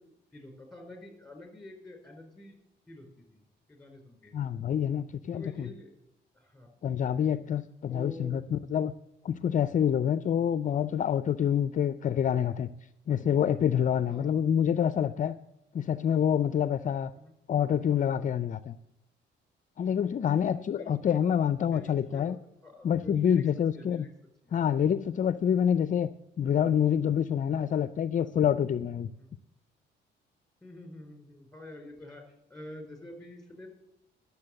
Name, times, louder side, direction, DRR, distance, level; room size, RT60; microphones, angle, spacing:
voice 1, 0.0-2.6 2.9-3.4 3.7-4.3 5.3-5.9 6.3-6.7 7.9-8.4 14.1-14.4 17.1-17.3 20.2-21.2 21.7-23.4 23.7-24.1 24.4-24.6 29.2-29.3 30.6-33.7, left 1 dB, 5° left, 3 dB, 4.4 m, -47 dB
voice 2, 4.3-5.7 6.8-8.9 9.2-12.7 13.1-15.3 15.7-17.1 17.5-18.8 19.8-22.4 22.8-24.1 24.5-26.1 26.4-29.1, left 8 dB, 40° left, 14 dB, 0.4 m, -27 dB
11.5 x 7.0 x 7.7 m, 0.86 s
cardioid pair, 90°, 20 cm